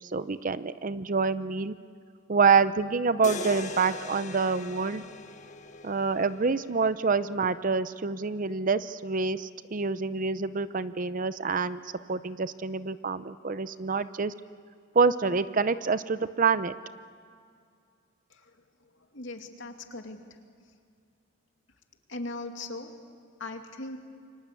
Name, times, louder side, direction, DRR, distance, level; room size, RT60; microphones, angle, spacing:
voice 1, 0.0-1.7 2.3-5.0 5.8-11.8 12.1-14.3 14.9-16.7, right 4 dB, 40° right, 14 dB, 0.7 m, -27 dB
sound 1, 3.2-7.3, left 3 dB, 40° left, 1.5 m, -40 dB
voice 2, 19.1-20.2 22.1-22.9 23.4-24.0, left 2 dB, 70° left, 4 dB, 2.6 m, -38 dB
29.0 x 24.5 x 8.3 m, 2.3 s
head